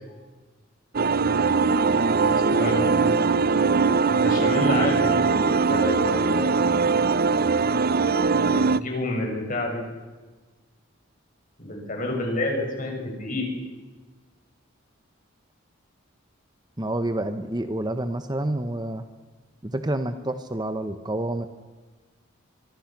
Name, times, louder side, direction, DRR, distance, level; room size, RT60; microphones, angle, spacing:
sound 1, 0.9-8.8, right 4 dB, 45° right, 0.6 m, -21 dB
voice 1, 2.5-2.9 4.1-5.3 5.7-6.6 8.4-9.8 11.6-13.5, left 1 dB, 40° left, 1 dB, 6.9 m, -29 dB
voice 2, 16.8-19.0 19.6-21.5, right 1 dB, 20° right, 9 dB, 1.0 m, -28 dB
25.0 x 24.0 x 6.1 m, 1.3 s
head